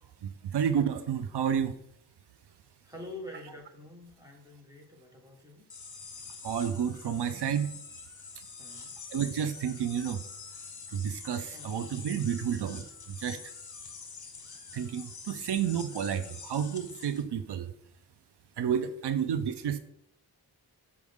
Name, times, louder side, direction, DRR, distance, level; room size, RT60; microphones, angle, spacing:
voice 1, 0.2-1.8 6.4-7.8 8.4-8.5 9.1-10.2 10.9-13.5 14.7-17.7 18.6-19.8, right 8 dB, 85° right, 11 dB, 0.6 m, -31 dB
voice 2, 2.8-5.7 8.6-8.9 11.5-11.7 19.0-19.1, left 1 dB, 10° right, 0 dB, 1.4 m, -46 dB
sound 1, 5.7-17.2, left 5 dB, 45° left, 1.1 m, -46 dB
6.4 x 4.8 x 3.5 m, 0.72 s
wide cardioid pair, 130°, 39 cm